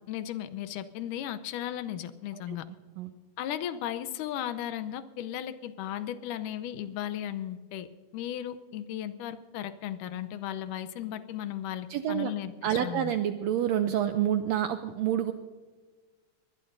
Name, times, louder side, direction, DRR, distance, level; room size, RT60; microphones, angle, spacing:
voice 1, 0.1-2.6 3.4-7.9 8.1-13.1, left 11 dB, 85° left, 12 dB, 2.3 m, -36 dB
voice 2, 11.9-12.3 12.6-15.3, right 10 dB, 85° right, 9 dB, 1.5 m, -28 dB
23.0 x 19.5 x 2.6 m, 1.4 s
omnidirectional pair, 3.7 m